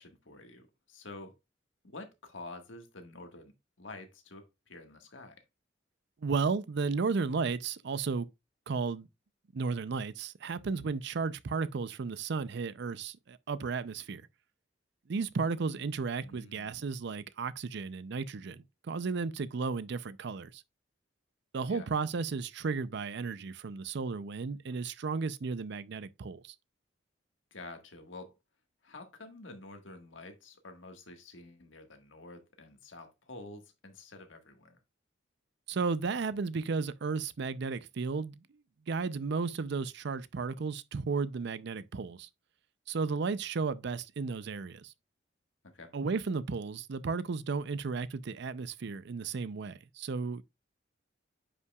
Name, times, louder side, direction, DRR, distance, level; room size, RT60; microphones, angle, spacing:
voice 1, 0.0-1.3 1.8-5.4 16.2-16.9 21.7-21.9 27.5-28.3 28.8-34.8 45.6-45.9, left 2 dB, 85° left, 1.6 m, -49 dB
voice 2, 6.2-8.3 8.7-9.1 9.5-14.2 15.1-20.5 21.5-26.4 35.7-38.3 38.9-42.3 42.9-44.9 45.9-50.4, right 4 dB, 65° right, 0.5 m, -34 dB
9.5 x 5.6 x 2.3 m
head